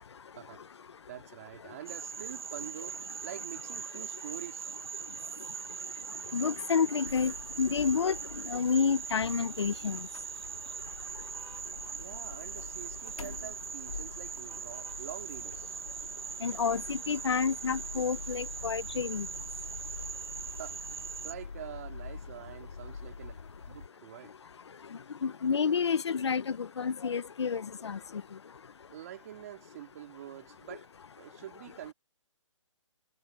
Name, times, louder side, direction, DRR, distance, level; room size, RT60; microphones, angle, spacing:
voice 1, 1.1-4.8 6.1-6.3 11.9-15.8 20.6-20.8 21.2-23.4 23.7-24.3 28.9-30.9 31.2-31.9, right 12 dB, 30° right, 3.6 m, -46 dB
Frog, 1.9-21.3, right 7 dB, 45° right, 1.3 m, -41 dB
voice 2, 6.3-10.0 16.4-19.3 25.2-28.2, left 6 dB, 55° left, 0.9 m, -29 dB
sound 1, 7.0-23.9, left 5 dB, 85° left, 4.9 m, -46 dB
sound 2, 11.3-11.7 13.0-13.4 14.5-15.0, right 3 dB, 85° right, 2.7 m, -57 dB
hypercardioid pair, 170°, 17 cm